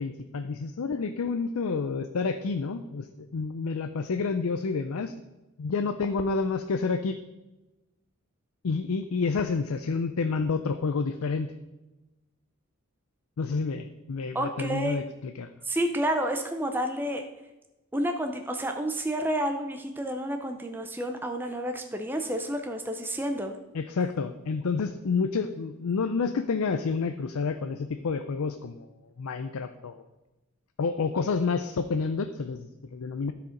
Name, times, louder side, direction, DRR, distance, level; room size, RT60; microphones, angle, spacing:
voice 1, 0.0-5.1 5.6-7.2 8.6-11.5 13.4-15.5 23.7-28.9 29.2-30.0 30.8-33.3, left 4 dB, 80° left, 9 dB, 0.5 m, -29 dB
voice 2, 14.3-15.0 15.6-17.2 17.9-23.6, right 1 dB, 10° right, 4 dB, 0.5 m, -30 dB
12.5 x 4.9 x 5.1 m, 1.0 s
head